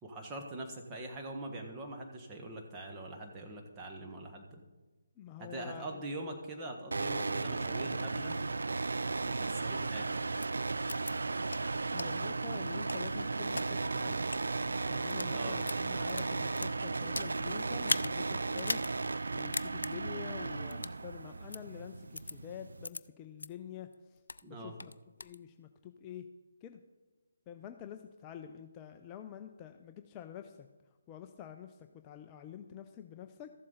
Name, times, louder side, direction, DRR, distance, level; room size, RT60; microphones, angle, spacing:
voice 1, 0.0-4.6 5.4-8.4 9.2-10.1 15.3-15.6 24.4-24.7, right 1 dB, 15° right, 1 dB, 1.4 m, -43 dB
voice 2, 5.2-6.0 11.9-14.3 14.9-18.8 19.3-24.2 24.5-24.9 25.2-26.3 26.6-26.8 27.5-30.7 31.1-33.5, left 9 dB, 20° left, 6 dB, 0.5 m, -47 dB
sound 1, 6.9-22.9, right 3 dB, 75° right, 0.3 m, -35 dB
sound 2, 10.4-10.5 10.9-11.1 11.5-11.6 12.0-12.1 12.6-13.7 14.2-14.4 15.0-15.3 15.6-17.3 17.8-18.1 18.6-18.9 19.2-19.3 19.5-19.9 20.7-21.0 21.5-21.6 22.2-22.3 22.8-23.0 23.4-23.5 23.9-24.4 24.8-25.4, left 3 dB, 75° left, 0.4 m, -37 dB
sound 3, 12.7-22.0 22.4-22.5, right 3 dB, 55° right, 1.1 m, -54 dB
14.0 x 7.5 x 4.0 m, 1.2 s
figure-of-eight pair, 150°, 0 cm